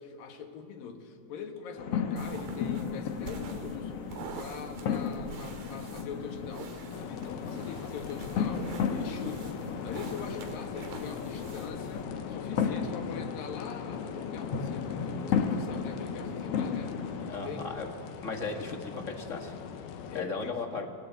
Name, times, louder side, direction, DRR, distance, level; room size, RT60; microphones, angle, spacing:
voice 1, 0.0-3.9 4.4-17.0 17.4-17.7 20.1-20.6, left 6 dB, 70° left, 5 dB, 3.4 m, -43 dB
sound 1, 1.8-17.3, left 6 dB, 55° left, 1.9 m, -34 dB
sound 2, 2.2-12.0, right 5 dB, 75° right, 3.9 m, -46 dB
sound 3, 6.9-20.2, left 7 dB, 90° left, 3.2 m, -42 dB
voice 2, 17.3-17.9 18.2-19.5 20.1-20.9, left 4 dB, 30° left, 3 dB, 1.6 m, -36 dB
28.0 x 21.5 x 8.3 m, 2.3 s
omnidirectional pair, 4.2 m